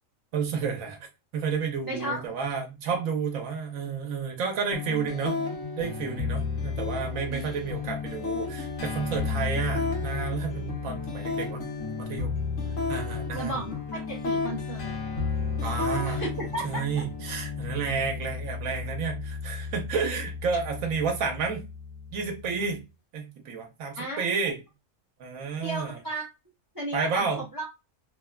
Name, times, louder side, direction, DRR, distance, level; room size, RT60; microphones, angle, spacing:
voice 1, 0.3-1.0 1.3-5.4 5.8-11.7 12.0-12.3 12.9-13.5 15.6-16.2 16.6-21.6 22.1-22.8 23.1-24.6 25.2-26.0 26.9-27.4, right 5 dB, 80° right, 1.1 m, -31 dB
voice 2, 1.8-2.4 7.3-7.5 13.3-15.0 16.0-17.0 24.0-24.2 25.6-26.2 26.7-27.7, right 1 dB, 25° right, 0.5 m, -35 dB
sound 1, 4.7-22.7, left 5 dB, 70° left, 1.2 m, -32 dB
3.0 x 2.1 x 2.2 m
omnidirectional pair, 1.4 m